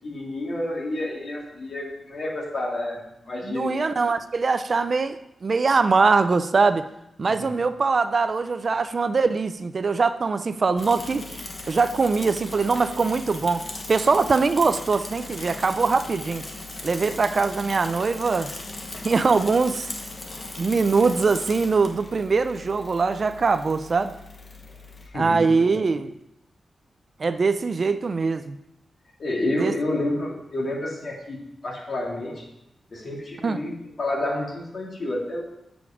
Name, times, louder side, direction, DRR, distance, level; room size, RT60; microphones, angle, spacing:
voice 1, 0.0-4.0 7.4-7.6 25.0-25.8 29.2-31.4 31.6-32.4 32.9-35.4, left 1 dB, 55° left, -2 dB, 2.2 m, -29 dB
voice 2, 3.4-6.8 7.2-11.2 11.7-13.6 13.9-16.4 16.8-18.5 19.0-19.9 20.6-24.1 25.1-26.1 27.2-28.6 29.6-29.7 33.4-33.6, right 4 dB, 50° right, 11 dB, 0.4 m, -22 dB
Bicycle / Mechanisms, 10.8-25.1, left 2 dB, 35° left, 1.1 m, -38 dB
8.3 x 5.2 x 4.9 m, 0.82 s
wide cardioid pair, 95°, 0 cm